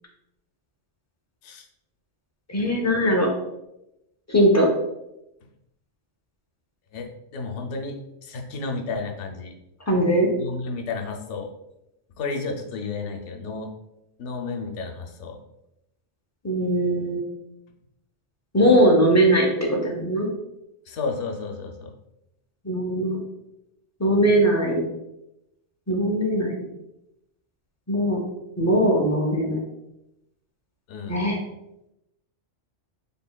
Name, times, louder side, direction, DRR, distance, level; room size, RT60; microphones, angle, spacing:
voice 1, 2.5-3.3 4.3-4.7 9.9-10.3 16.4-17.2 18.5-20.3 22.6-23.2 24.0-24.8 25.9-26.5 27.9-28.2 28.6-29.6 31.1-31.4, equal, 25° left, 0 dB, 0.3 m, -20 dB
voice 2, 6.9-9.5 10.4-11.5 12.2-13.7 14.2-15.4 20.9-21.9 30.9-31.2, left 4 dB, 75° left, 2 dB, 0.9 m, -32 dB
3.8 x 3.6 x 2.2 m, 0.88 s
omnidirectional pair, 1.2 m